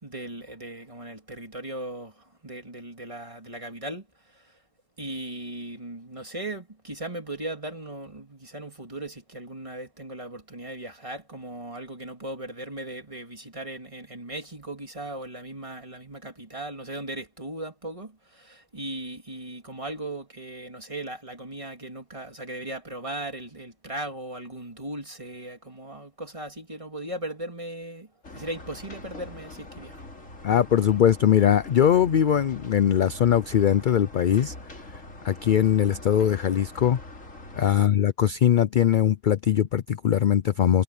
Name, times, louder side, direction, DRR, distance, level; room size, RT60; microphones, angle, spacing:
voice 1, 0.0-4.6 5.0-30.0, right 1 dB, 25° right, 2.9 m, -38 dB
sound 1, 28.2-37.8, left 2 dB, 80° left, 4.4 m, -43 dB
voice 2, 30.4-34.5 35.2-37.0 37.6-40.8, left 9 dB, 55° left, 0.6 m, -21 dB
omnidirectional pair, 1.3 m